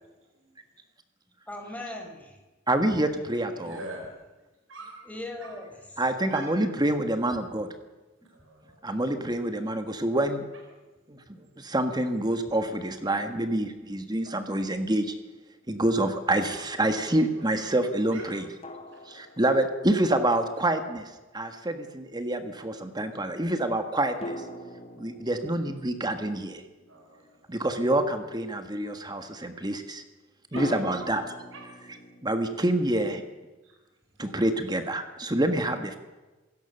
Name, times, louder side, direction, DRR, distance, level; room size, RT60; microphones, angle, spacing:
voice 1, 1.5-2.4 5.1-6.0, left 2 dB, 10° left, 2 dB, 4.8 m, -39 dB
voice 2, 2.7-3.8 6.0-7.7 8.8-10.4 11.1-11.2 11.6-15.1 15.7-18.4 19.1-24.4 25.0-26.6 27.5-30.0 30.5-31.2 32.2-33.2 34.2-36.0, right 1 dB, 20° right, 8 dB, 1.5 m, -27 dB
voice 3, 3.6-4.1 4.7-5.0 5.4-5.5 6.3-6.5 8.3-8.8 16.5-17.8 18.1-18.4 18.9-19.0 26.9-27.5 30.5-31.1 31.5-31.6 33.6-33.7, right 2 dB, 85° right, 0 dB, 4.6 m, -44 dB
sound 1, 15.0-15.1 18.6-20.1 24.2-27.8 30.6-33.3, equal, 30° left, 2.2 m, -42 dB
27.0 x 17.0 x 6.8 m, 1.2 s
head